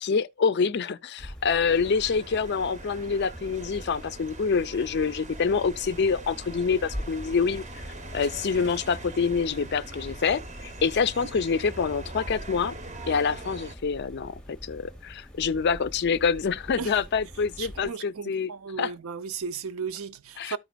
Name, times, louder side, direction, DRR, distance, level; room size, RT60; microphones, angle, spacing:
voice 1, 0.0-7.6 8.1-12.7 13.1-18.5 18.8-18.9 20.4-20.6, left 5 dB, 50° left, 0.4 m, -26 dB
sound 1, 1.2-17.9, equal, 5° left, 0.7 m, -44 dB
sound 2, 1.7-13.8, right 2 dB, 35° right, 0.7 m, -42 dB
voice 2, 17.6-20.6, right 6 dB, 65° right, 0.5 m, -35 dB
13.5 x 5.0 x 2.3 m
head